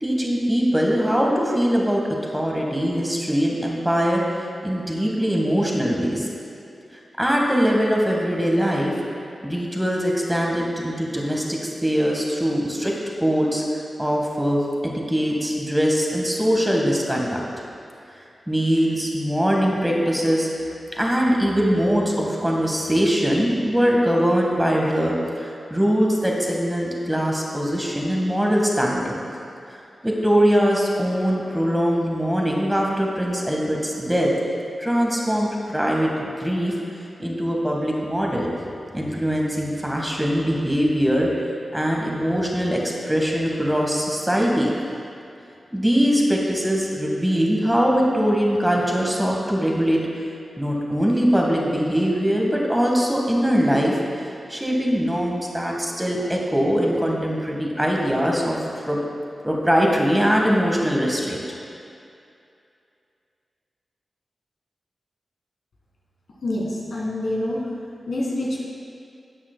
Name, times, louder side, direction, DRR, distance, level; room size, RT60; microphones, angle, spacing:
voice 1, 0.0-4.2 4.6-6.3 7.2-8.9 9.4-12.9 13.2-17.4 18.5-29.2 30.0-34.3 34.8-36.7 37.2-38.5 38.9-41.3 41.7-44.7 45.7-50.0 50.6-54.0 54.5-59.0 59.4-61.4, equal, 10° right, -2 dB, 1.5 m, -22 dB
voice 2, 66.4-67.6 68.1-68.6, left 1 dB, 80° left, -5 dB, 1.6 m, -26 dB
11.5 x 7.2 x 2.2 m, 2.5 s
cardioid pair, 40°, 0 cm